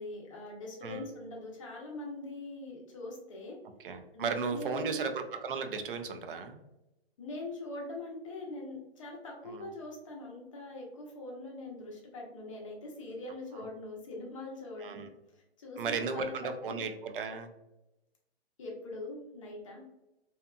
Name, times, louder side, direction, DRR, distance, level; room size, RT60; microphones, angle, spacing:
voice 1, 0.0-3.6 4.1-5.0 7.2-15.1 15.3-16.3 16.7-16.8 18.6-19.8, left 2 dB, 30° left, -2 dB, 0.6 m, -42 dB
voice 2, 3.8-6.6 9.5-9.7 13.5-13.7 14.8-15.1 15.8-17.5, right 5 dB, 55° right, 7 dB, 0.4 m, -35 dB
2.8 x 2.3 x 2.2 m, 0.93 s
hypercardioid pair, 165°, 32 cm